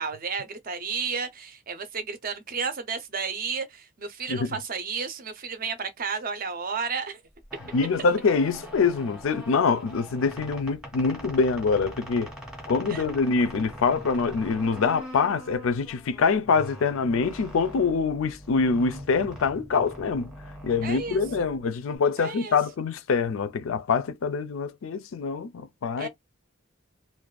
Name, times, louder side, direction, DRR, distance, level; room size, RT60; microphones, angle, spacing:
voice 1, 0.0-7.2 12.9-13.1 20.8-21.2 22.2-22.6 26.0-26.1, right 5 dB, 40° right, 0.5 m, -32 dB
sound 1, 7.3-22.0, equal, 5° right, 0.7 m, -42 dB
voice 2, 7.7-12.3 12.7-20.3 20.6-26.1, left 5 dB, 70° left, 0.4 m, -25 dB
2.5 x 2.2 x 2.2 m
head